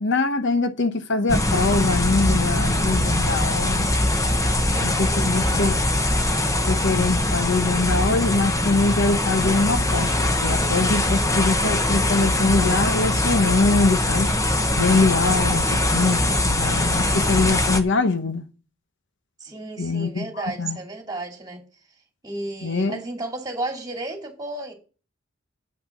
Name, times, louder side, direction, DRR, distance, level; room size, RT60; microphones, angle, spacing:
voice 1, 0.0-3.9 4.8-5.8 6.7-10.1 10.4-14.3 14.7-18.4 19.8-20.3 20.6-20.8 22.6-23.0, left 3 dB, 65° left, 0.9 m, -23 dB
sound 1, 1.3-17.8, left 1 dB, 15° left, 1.0 m, -22 dB
voice 2, 4.5-5.8 19.4-21.6 22.2-24.7, right 2 dB, 20° right, 2.7 m, -33 dB
8.6 x 6.0 x 6.2 m
head